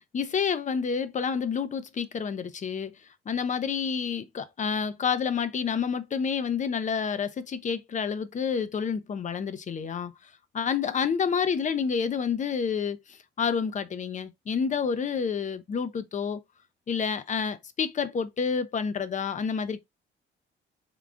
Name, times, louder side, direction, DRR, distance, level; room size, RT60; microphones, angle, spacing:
voice 1, 0.1-2.9 3.3-10.1 10.5-16.4 16.9-19.8, left 6 dB, 40° left, 0.5 m, -29 dB
3.7 x 2.3 x 3.6 m
cardioid pair, 90°, 20 cm